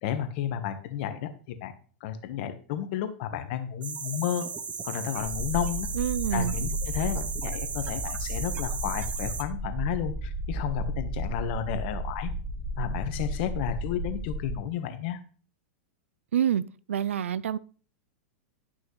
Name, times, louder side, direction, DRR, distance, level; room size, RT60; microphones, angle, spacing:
voice 1, 0.0-1.7 2.0-4.5 4.8-5.9 6.3-12.3 12.8-15.2, left 10 dB, 55° left, 1.2 m, -32 dB
sound 1, 3.8-9.4, right 6 dB, 20° right, 0.8 m, -36 dB
sound 2, 5.2-14.6, right 1 dB, 10° left, 0.9 m, -33 dB
voice 2, 5.9-6.5 16.3-16.6 16.9-17.6, right 9 dB, 90° right, 0.4 m, -26 dB
11.5 x 6.2 x 3.2 m
hypercardioid pair, 120°, 7 cm